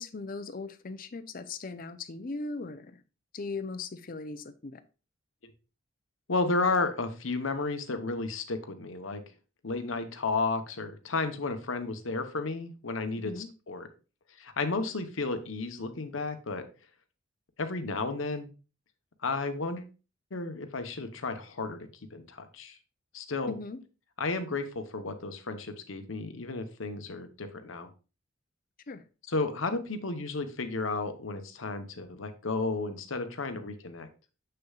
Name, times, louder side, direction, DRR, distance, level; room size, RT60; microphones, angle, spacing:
voice 1, 0.0-3.0 3.3-4.8 13.2-13.5 23.5-23.8 28.9-29.0, left 3 dB, 45° left, 0.6 m, -38 dB
voice 2, 6.3-9.2 9.6-13.9 14.4-16.6 17.6-18.5 19.2-19.9 20.3-22.8 23.1-23.5 24.2-27.9 29.3-34.1, left 3 dB, 85° left, 1.0 m, -33 dB
6.8 x 6.7 x 2.4 m
head